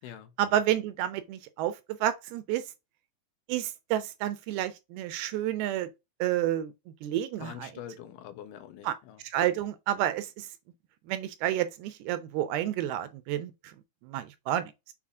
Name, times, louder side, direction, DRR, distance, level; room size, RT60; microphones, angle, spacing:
voice 1, 0.4-2.6 3.5-5.9 6.2-6.7 7.0-7.7 8.8-8.9 9.3-10.5 11.1-13.5 14.0-14.7, right 12 dB, 80° right, 2.6 m, -30 dB
voice 2, 7.4-9.2, left 10 dB, 85° left, 2.8 m, -44 dB
7.3 x 4.1 x 3.6 m
omnidirectional pair, 4.5 m